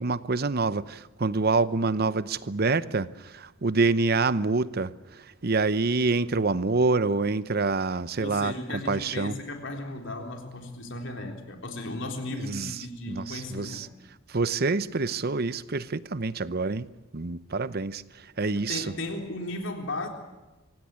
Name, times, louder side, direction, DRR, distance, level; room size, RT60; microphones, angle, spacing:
voice 1, 0.0-8.5 8.9-9.4 12.4-12.7 13.1-13.9 14.3-16.9 17.1-18.8, right 3 dB, 50° right, 16 dB, 0.8 m, -26 dB
voice 2, 8.2-13.8 18.5-20.1, left 2 dB, 60° left, 3 dB, 3.8 m, -35 dB
25.5 x 16.5 x 9.6 m, 1.0 s
head